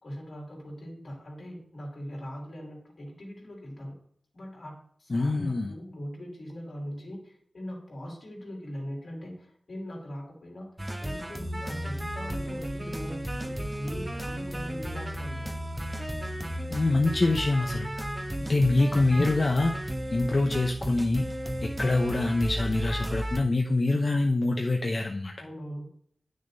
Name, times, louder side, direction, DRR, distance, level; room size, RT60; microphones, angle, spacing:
voice 1, 0.0-4.0 4.3-10.7 11.0-15.5 18.3-18.6 25.4-25.9, equal, 70° left, -2 dB, 3.4 m, -41 dB
voice 2, 5.1-5.7 16.7-17.9 18.5-21.3 21.6-25.3, left 2 dB, 45° left, 1 dB, 0.7 m, -25 dB
sound 1, 10.8-23.4, right 1 dB, 15° right, 0.7 m, -34 dB
10.0 x 6.4 x 2.7 m, 0.63 s
wide cardioid pair, 100°, 0 cm